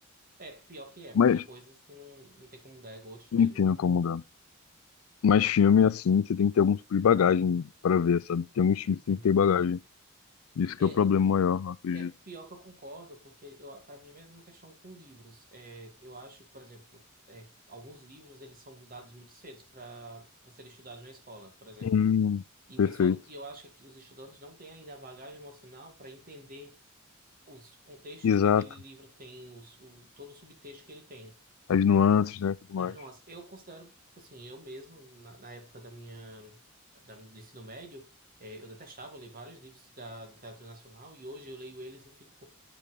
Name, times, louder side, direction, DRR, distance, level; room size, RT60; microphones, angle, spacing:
voice 1, 0.4-3.6 8.8-9.3 10.8-11.1 11.9-17.0 17.3-22.1 22.7-26.8 27.5-31.3 32.8-36.6 36.9-38.1 38.4-42.5, right 1 dB, 45° right, 2.0 m, -48 dB
voice 2, 3.3-4.2 5.2-9.8 10.6-12.1 21.8-22.4 22.8-23.2 28.2-28.6 31.7-32.9, left 7 dB, 75° left, 0.4 m, -24 dB
8.7 x 5.3 x 4.0 m
head